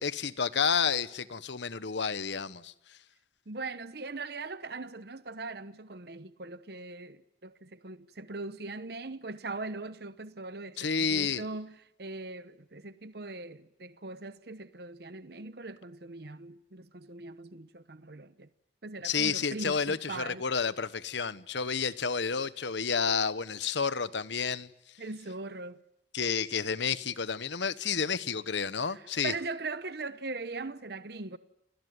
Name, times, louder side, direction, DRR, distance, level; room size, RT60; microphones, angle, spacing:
voice 1, 0.0-2.7 10.8-11.4 19.0-24.7 26.1-29.3, left 6 dB, 70° left, 1.1 m, -30 dB
voice 2, 3.5-18.5 18.8-20.4 25.0-25.8 28.9-31.4, right 3 dB, 55° right, 1.0 m, -40 dB
29.0 x 20.5 x 9.5 m
head